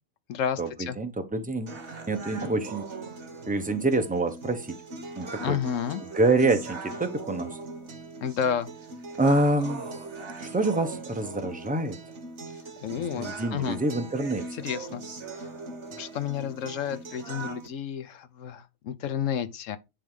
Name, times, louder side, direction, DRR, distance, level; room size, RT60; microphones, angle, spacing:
voice 1, 0.3-1.0 5.4-6.0 8.2-8.7 12.8-13.8 14.5-15.0 15.3-15.4 16.0-19.8, left 8 dB, 75° left, 1.1 m, -31 dB
voice 2, 1.0-1.7 2.1-2.8 3.5-4.8 5.2-5.6 6.1-7.6 9.2-9.9 10.4-12.0 13.0-14.4, right 2 dB, 10° right, 0.7 m, -26 dB
sound 1, 1.7-17.7, right 3 dB, 60° right, 1.7 m, -40 dB
10.0 x 3.5 x 3.7 m
omnidirectional pair, 1.4 m